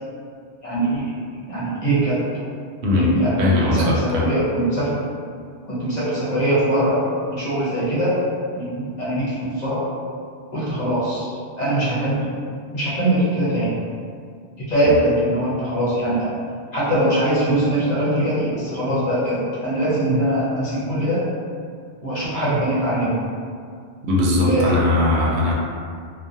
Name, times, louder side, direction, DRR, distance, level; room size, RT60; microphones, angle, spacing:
voice 1, 0.6-1.1 1.5-2.2 2.9-5.0 5.7-7.0 7.3-8.2 8.5-9.9 10.5-11.3 11.6-12.2 12.7-13.7 14.6-16.4 16.7-21.2 22.0-23.2 24.4-24.7, right 1 dB, 45° left, -9 dB, 0.7 m, -22 dB
voice 2, 2.8-3.1 3.4-4.3 14.8-15.0 24.1-25.5, left 2 dB, 80° right, -4 dB, 0.8 m, -19 dB
2.3 x 2.1 x 2.7 m, 2.2 s
omnidirectional pair, 1.1 m